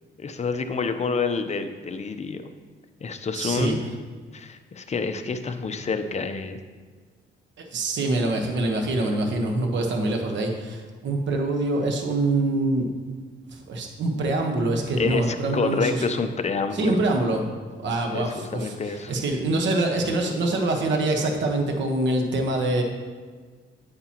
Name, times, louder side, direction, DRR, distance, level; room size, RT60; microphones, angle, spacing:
voice 1, 0.2-2.5 3.0-3.8 4.3-6.6 15.0-17.0 18.1-19.1, left 4 dB, 35° left, 8 dB, 0.7 m, -28 dB
voice 2, 3.3-3.8 7.6-12.9 13.5-16.0 16.7-17.4 17.8-22.8, right 2 dB, 65° right, 3 dB, 1.3 m, -25 dB
8.9 x 8.7 x 3.0 m, 1.5 s
cardioid pair, 90°, 20 cm